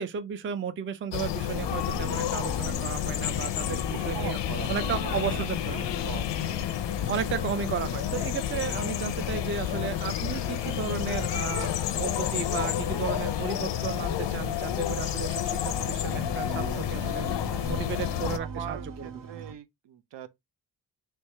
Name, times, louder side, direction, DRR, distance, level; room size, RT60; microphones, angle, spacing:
voice 1, 0.0-4.4 4.7-5.8 7.1-17.3 17.7-19.1, right 7 dB, 30° right, 0.4 m, -34 dB
sound 1, 1.1-18.4, left 11 dB, 85° left, 0.6 m, -30 dB
sound 2, 1.5-19.5, right 4 dB, 50° right, 0.7 m, -43 dB
voice 2, 3.9-6.6 17.6-18.0 18.4-20.3, right 10 dB, 85° right, 0.7 m, -42 dB
3.3 x 3.1 x 4.3 m
wide cardioid pair, 135°, 42 cm